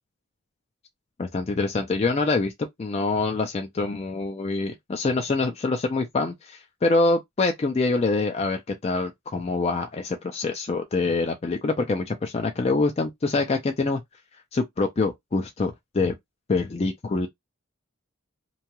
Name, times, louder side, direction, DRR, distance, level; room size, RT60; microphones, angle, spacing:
voice 1, 1.2-2.5 2.8-14.0 14.5-16.1 16.5-17.3, left 3 dB, 30° left, 0.4 m, -25 dB
2.7 x 2.2 x 2.9 m
head